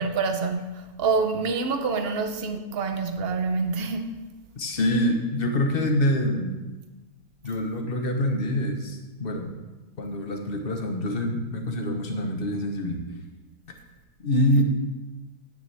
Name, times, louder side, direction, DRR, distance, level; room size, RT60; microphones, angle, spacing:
voice 1, 0.0-4.1 14.5-14.6, right 4 dB, 50° right, 0.9 m, -27 dB
voice 2, 4.6-6.5 7.4-9.5 10.0-13.0 14.2-14.6, left 1 dB, 40° left, 1.3 m, -25 dB
10.5 x 9.4 x 3.5 m
omnidirectional pair, 1.6 m